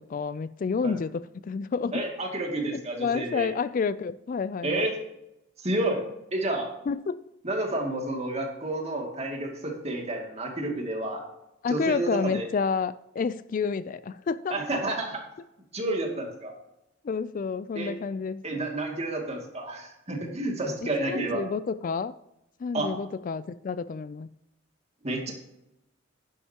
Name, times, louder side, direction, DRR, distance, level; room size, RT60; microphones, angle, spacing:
voice 1, 0.1-2.0 2.7-4.9 6.9-7.2 11.6-14.6 17.0-18.6 20.8-22.1 22.6-24.3, left 5 dB, 40° left, 15 dB, 0.3 m, -30 dB
voice 2, 1.9-3.5 4.6-4.9 5.6-6.0 6.3-6.7 7.4-11.2 11.7-12.5 14.5-15.2 15.7-16.5 17.8-17.9 18.4-21.4 22.7-22.9 25.0-25.3, right 2 dB, 35° right, 1 dB, 2.3 m, -30 dB
11.0 x 10.0 x 2.9 m, 0.86 s
head